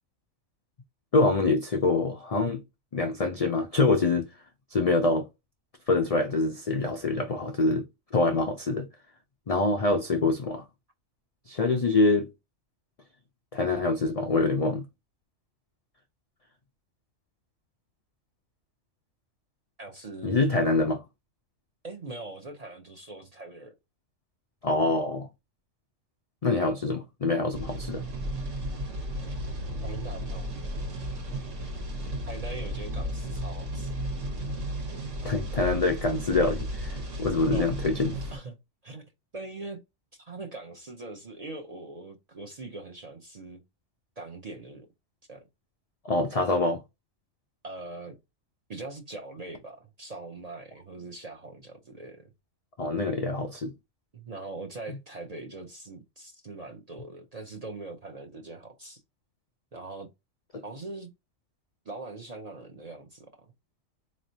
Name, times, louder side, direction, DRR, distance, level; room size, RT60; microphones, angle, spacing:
voice 1, 1.1-2.6 2.9-4.3 4.7-5.3 5.9-8.9 9.5-10.6 11.5-12.3 13.5-14.8 20.2-21.0 24.6-25.3 26.4-28.0 35.2-38.2 46.0-46.8 52.8-53.7 60.5-60.6, left 3 dB, 75° left, 0.3 m, -25 dB
voice 2, 19.8-20.4 21.8-23.7 29.8-30.5 32.3-34.0 37.5-37.7 38.3-38.6 38.8-39.0 39.3-39.8 40.2-43.6 44.2-44.9 45.3-45.4 47.6-48.2 48.7-52.3 54.1-59.0 59.7-60.1 60.6-61.1 61.8-63.5, right 2 dB, 45° right, 0.5 m, -41 dB
sound 1, 27.5-38.4, equal, 70° right, 1.4 m, -34 dB
4.2 x 3.1 x 2.7 m
omnidirectional pair, 1.3 m